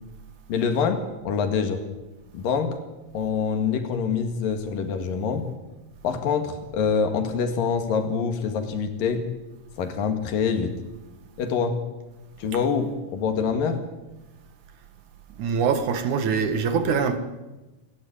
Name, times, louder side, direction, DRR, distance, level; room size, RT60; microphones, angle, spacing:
voice 1, 0.5-1.8 2.3-2.8 3.1-5.5 6.0-9.3 9.8-10.7 11.4-11.8 12.4-13.8, left 6 dB, 80° left, 3.7 m, -25 dB
voice 2, 15.4-17.2, right 6 dB, 65° right, 2.7 m, -23 dB
27.5 x 12.0 x 8.7 m
omnidirectional pair, 3.9 m